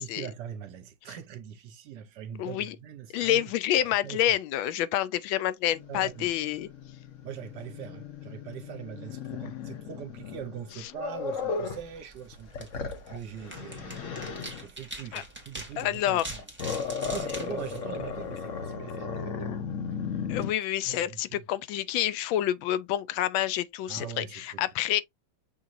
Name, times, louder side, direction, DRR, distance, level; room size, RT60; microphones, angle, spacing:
voice 1, 0.0-3.5 3.8-4.4 5.9-6.3 7.2-16.4 17.0-19.6 20.1-20.2 20.8-21.4 23.9-24.7, right 9 dB, 70° right, 1.2 m, -42 dB
voice 2, 2.4-2.8 3.1-6.7 12.9-13.0 15.1-15.2 15.8-16.3 17.3-17.4 20.3-25.0, left 12 dB, 90° left, 1.4 m, -28 dB
Growling, 5.7-11.9 12.3-14.7 16.1-20.5, left 6 dB, 50° left, 1.0 m, -36 dB
sound 1, 11.6-18.6, right 1 dB, 5° right, 1.2 m, -44 dB
6.4 x 2.9 x 2.5 m
omnidirectional pair, 2.1 m